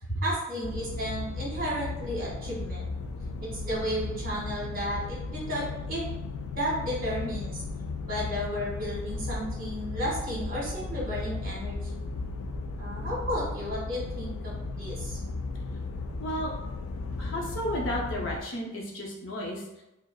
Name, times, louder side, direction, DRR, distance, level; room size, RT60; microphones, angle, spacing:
voice 1, 0.2-2.9 3.4-6.1 6.5-7.6 8.1-12.0 12.8-15.2, equal, 40° right, -5 dB, 1.3 m, -33 dB
sound 1, 0.6-18.4, left 3 dB, 90° left, 0.3 m, -35 dB
voice 2, 16.2-16.5 17.1-19.8, equal, 60° left, -2 dB, 0.7 m, -33 dB
4.8 x 2.0 x 2.3 m, 0.92 s
head